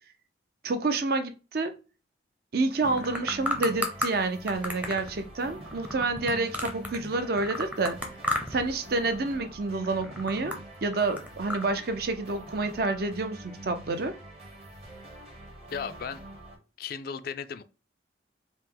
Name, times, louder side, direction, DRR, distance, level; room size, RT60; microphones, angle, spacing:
voice 1, 0.6-1.7 2.5-8.0 8.5-10.5 10.8-14.1, right 3 dB, 50° right, 0.5 m, -28 dB
sound 1, 2.8-4.1 4.5-7.1 7.4-8.7 9.0-9.4 9.8-11.6, left 1 dB, 10° right, 0.6 m, -32 dB
sound 2, 2.8-16.6, right 1 dB, 30° right, 0.9 m, -45 dB
voice 2, 15.7-16.2 16.8-17.6, left 6 dB, 50° left, 0.3 m, -35 dB
4.7 x 2.1 x 3.7 m
head